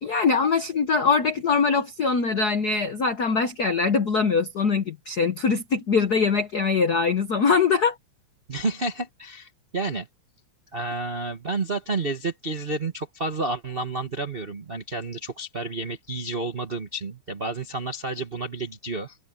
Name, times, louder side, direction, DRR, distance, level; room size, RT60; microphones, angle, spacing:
voice 1, 0.0-7.9, left 5 dB, 85° left, 0.8 m, -22 dB
voice 2, 8.5-10.1 10.7-19.2, right 3 dB, 80° right, 0.5 m, -30 dB
omnidirectional pair, 3.4 m